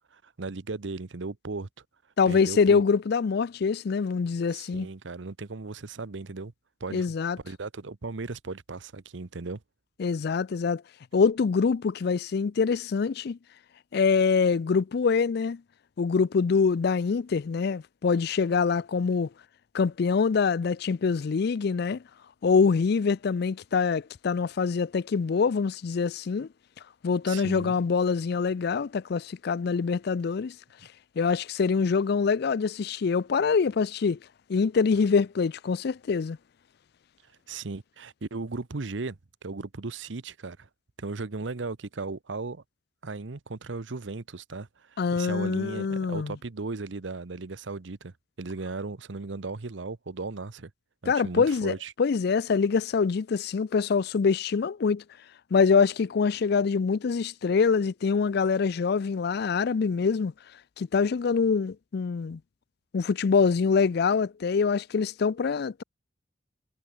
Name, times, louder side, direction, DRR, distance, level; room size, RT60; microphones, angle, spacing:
voice 1, 0.1-1.7 2.3-2.8 4.5-6.5 6.8-7.1 7.4-9.6 27.3-27.8 37.5-40.7 41.0-42.6 43.0-50.7 51.0-51.9, right 3 dB, 75° right, 0.9 m, -36 dB
voice 2, 2.2-4.9 6.9-7.4 10.0-10.8 11.1-13.4 13.9-15.6 16.0-19.3 19.7-22.0 22.4-26.5 27.0-30.5 31.2-34.2 34.5-36.4 45.0-46.3 51.1-55.0 55.5-60.3 60.8-62.4 62.9-65.8, left 5 dB, 60° left, 0.4 m, -25 dB
head